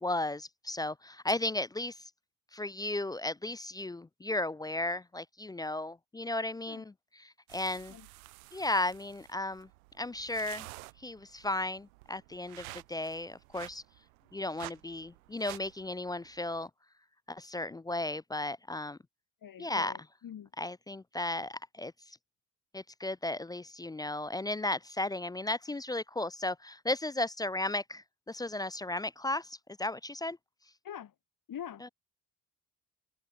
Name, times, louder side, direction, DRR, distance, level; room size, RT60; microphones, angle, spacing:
voice 1, 0.0-2.1 2.5-7.9 8.5-9.7 10.0-10.7 11.0-13.8 14.3-16.7 17.3-19.0 19.6-19.9 20.6-22.2 22.7-30.4 31.8-31.9, left 2 dB, 10° left, 0.4 m, -35 dB
sound 1, 7.5-16.7, right 24 dB, 80° right, 4.8 m, -51 dB
voice 2, 19.4-20.5 30.8-31.1 31.5-31.9, left 9 dB, 50° left, 8.0 m, -44 dB
hypercardioid pair, 60°, 43 cm